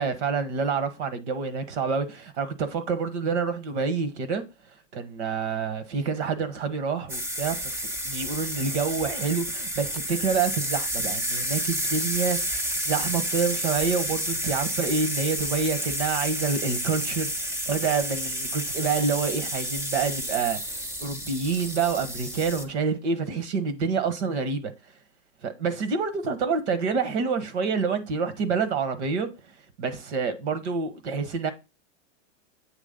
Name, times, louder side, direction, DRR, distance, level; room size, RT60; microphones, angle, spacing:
voice 1, 0.0-4.4 4.9-17.3 17.7-24.7 25.4-29.3 29.8-31.5, right 5 dB, 65° right, 1.4 m, -27 dB
sound 1, 7.1-22.6, right 1 dB, 5° right, 0.6 m, -30 dB
8.2 x 3.2 x 5.2 m
supercardioid pair, 150°, 37 cm